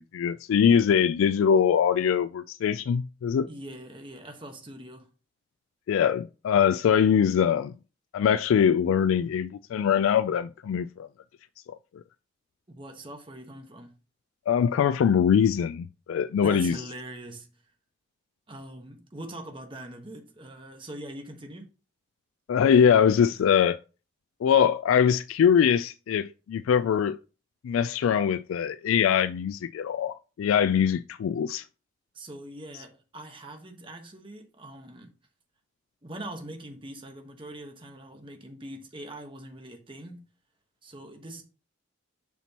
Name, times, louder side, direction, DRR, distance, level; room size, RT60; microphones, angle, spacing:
voice 1, 0.0-3.5 5.9-7.7 8.1-11.1 14.5-16.8 22.5-23.8 24.4-27.2 27.6-31.7, left 8 dB, 85° left, 0.3 m, -23 dB
voice 2, 3.5-5.1 12.7-14.0 16.4-17.6 18.5-21.7 23.3-23.5 32.1-35.1 36.0-40.3 40.8-41.4, right 1 dB, 25° right, 1.2 m, -42 dB
7.1 x 6.0 x 2.9 m
head